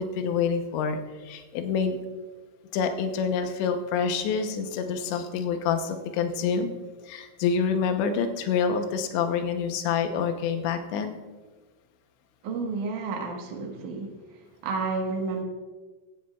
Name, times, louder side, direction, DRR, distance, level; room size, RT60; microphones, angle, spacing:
voice 1, 0.0-2.0 2.7-6.7 7.1-11.2, left 6 dB, 75° left, 6 dB, 2.9 m, -27 dB
voice 2, 12.4-14.2 14.6-15.4, right 4 dB, 65° right, 2 dB, 2.0 m, -31 dB
16.0 x 14.0 x 2.4 m, 1.3 s
omnidirectional pair, 5.6 m